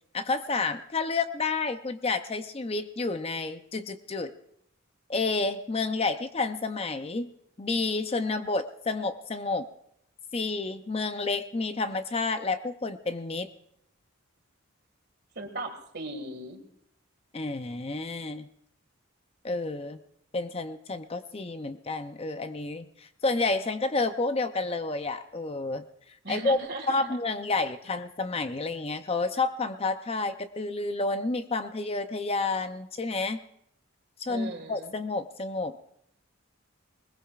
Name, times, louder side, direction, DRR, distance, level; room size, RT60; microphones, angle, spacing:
voice 1, 0.1-4.3 5.1-7.3 7.6-9.7 10.3-13.5 17.3-18.5 19.4-20.0 20.3-25.9 26.3-26.6 26.9-33.4 34.2-35.9, left 3 dB, 30° left, 9 dB, 0.5 m, -30 dB
voice 2, 15.4-16.6 26.2-27.2 34.3-34.9, right 2 dB, 50° right, 5 dB, 2.0 m, -38 dB
21.0 x 20.5 x 2.4 m, 0.74 s
head